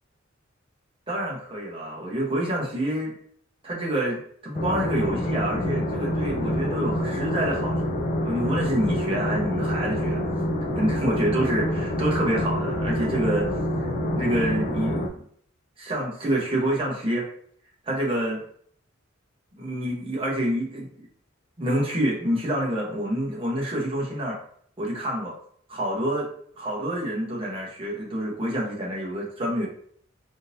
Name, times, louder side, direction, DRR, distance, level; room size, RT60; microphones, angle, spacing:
voice 1, 1.1-3.1 3.6-10.2 10.7-13.5 14.2-15.1 15.8-17.3 17.8-18.4 19.6-21.1 21.6-24.4 24.8-25.3 25.7-26.3 26.6-29.7, right 1 dB, 25° right, -4 dB, 0.9 m, -27 dB
sound 1, 4.5-15.1, left 1 dB, 40° left, 0.4 m, -27 dB
3.7 x 2.7 x 2.6 m, 0.62 s
head